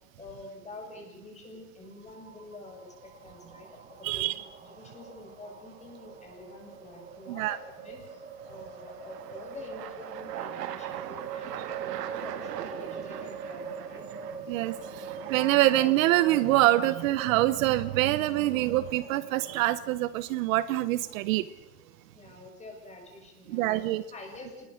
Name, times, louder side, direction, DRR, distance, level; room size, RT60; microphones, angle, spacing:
voice 1, 0.2-14.0 22.1-23.8 24.1-24.7, left 2 dB, 15° left, 1 dB, 6.9 m, -47 dB
sound 1, 1.9-19.7, right 6 dB, 15° right, 3.2 m, -43 dB
sound 2, 3.4-3.9 7.7-22.3, right 11 dB, 85° right, 2.3 m, -43 dB
voice 2, 4.0-4.4 7.3-7.6 14.5-21.5 23.5-24.0, right 16 dB, 55° right, 15 dB, 1.0 m, -25 dB
27.5 x 21.0 x 6.5 m, 1.0 s
supercardioid pair, 150°, 47 cm